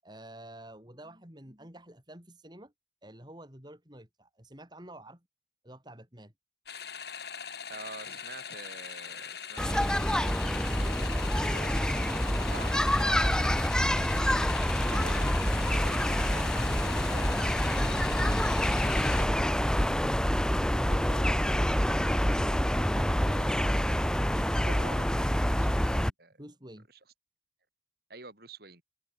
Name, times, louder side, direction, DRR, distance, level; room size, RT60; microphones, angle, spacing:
voice 1, 0.0-2.7 3.0-5.3 5.6-6.3 26.4-26.9, right 1 dB, 25° right, 7.1 m, -49 dB
sound 1, 6.7-19.3, left 7 dB, 60° left, 7.3 m, -41 dB
voice 2, 7.7-11.0 11.5-20.2 20.7-21.6 22.3-26.4 28.1-28.8, right 3 dB, 55° right, 4.2 m, -49 dB
sound 2, 9.6-26.1, equal, 5° left, 1.2 m, -27 dB
open air
head